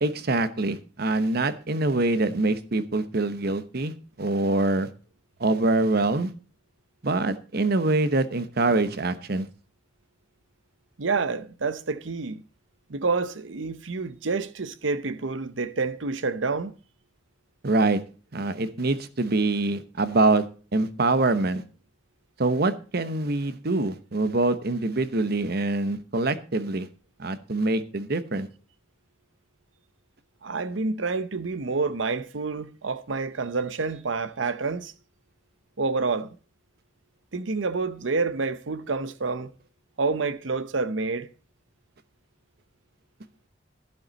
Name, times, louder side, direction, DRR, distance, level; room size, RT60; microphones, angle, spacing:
voice 1, 0.0-4.9 5.4-6.3 7.0-9.5 17.6-18.0 18.3-20.4 20.7-21.6 22.4-26.9 27.2-28.5, right 2 dB, 55° right, 1.0 m, -24 dB
voice 2, 11.0-12.4 12.9-16.7 30.4-34.9 35.8-36.4 37.3-39.5 40.0-41.3, right 4 dB, 85° right, 0.9 m, -28 dB
12.0 x 11.0 x 4.0 m
head